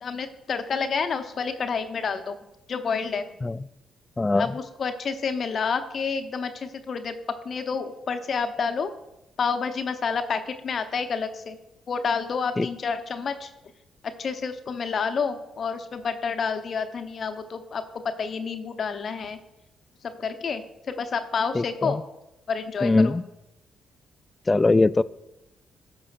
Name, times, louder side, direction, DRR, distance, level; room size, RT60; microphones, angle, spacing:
voice 1, 0.0-2.4 2.7-3.2 4.4-7.1 7.4-8.9 9.4-11.6 11.9-13.5 14.2-19.4 20.0-20.6 21.0-22.0 22.5-23.2, left 5 dB, 50° left, 9 dB, 0.8 m, -29 dB
voice 2, 4.2-4.5 12.6-12.7 21.5-22.0 22.8-23.2 24.5-25.0, left 2 dB, 25° left, 18 dB, 0.3 m, -21 dB
16.5 x 5.6 x 2.5 m, 0.90 s
figure-of-eight pair, 40°, 0 cm